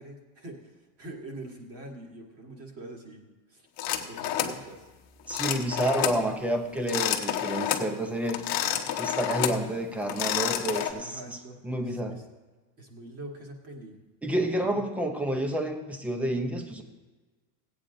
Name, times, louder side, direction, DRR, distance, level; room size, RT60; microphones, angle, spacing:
voice 1, 0.0-3.7 3.9-4.9 10.9-12.2 12.8-14.8, right 2 dB, 30° right, 1 dB, 1.7 m, -44 dB
sound 1, 3.8-4.6 5.3-6.2 6.8-7.9 8.3-9.6 10.0-10.9, left 11 dB, 45° left, 1.0 m, -29 dB
voice 2, 5.3-8.4 9.0-11.4 11.6-12.2 14.2-16.8, right 1 dB, 5° right, 5 dB, 0.6 m, -29 dB
16.5 x 8.7 x 3.8 m, 1.3 s
cardioid pair, 160°, 48 cm